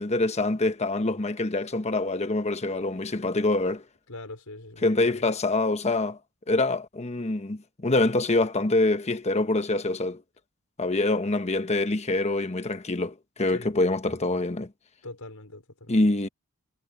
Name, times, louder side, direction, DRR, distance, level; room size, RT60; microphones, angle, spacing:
voice 1, 0.0-3.8 4.8-6.2 6.5-10.2 10.8-14.7 15.9-16.3, left 2 dB, 30° left, 1.1 m, -25 dB
voice 2, 4.1-5.2 13.5-13.7 15.0-16.0, left 2 dB, 80° left, 4.9 m, -42 dB
head